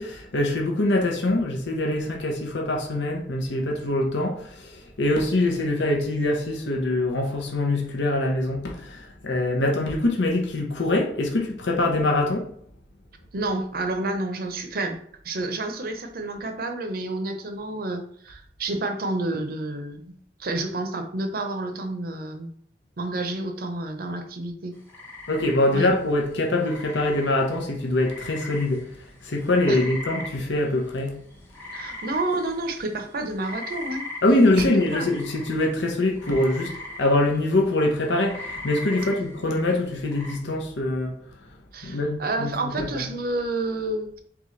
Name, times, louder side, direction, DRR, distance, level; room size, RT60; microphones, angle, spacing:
voice 1, 0.0-12.5 25.3-28.9 29.2-31.2 34.2-41.2 41.8-43.1, left 2 dB, 80° left, 1 dB, 0.8 m, -24 dB
voice 2, 13.3-15.0 15.2-20.1 20.4-22.5 23.0-24.7 25.7-25.9 29.7-29.8 31.7-34.1 34.6-35.1 41.7-44.2, right 2 dB, 55° right, 5 dB, 0.6 m, -29 dB
sound 1, 24.7-40.4, left 1 dB, 10° left, 1.0 m, -40 dB
4.0 x 3.5 x 3.2 m, 0.64 s
head